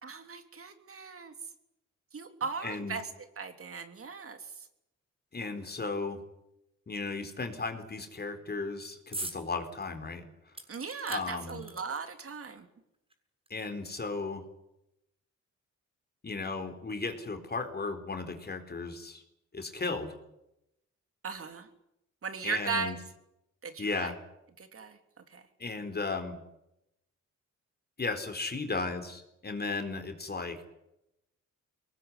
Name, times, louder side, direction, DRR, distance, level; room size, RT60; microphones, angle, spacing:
voice 1, 0.0-1.3 2.1-3.1 3.4-4.4 10.7-12.7 21.2-21.7 22.2-23.0 23.6-24.1 24.6-25.0 25.3-25.4, right 5 dB, 50° right, 7 dB, 3.4 m, -37 dB
voice 2, 2.6-3.0 5.3-6.2 6.9-10.2 11.1-11.6 13.5-14.4 16.2-19.2 19.5-20.1 22.4-23.0 23.8-24.2 25.6-26.4 28.0-30.6, left 3 dB, 35° left, 6 dB, 4.2 m, -35 dB
sound 1, 9.1-9.4 9.8-9.9 10.5-12.2 13.1-13.2 13.5-13.6, right 2 dB, 20° right, 7.3 m, -41 dB
23.0 x 19.5 x 9.8 m, 0.85 s
cardioid pair, 85°, 29 cm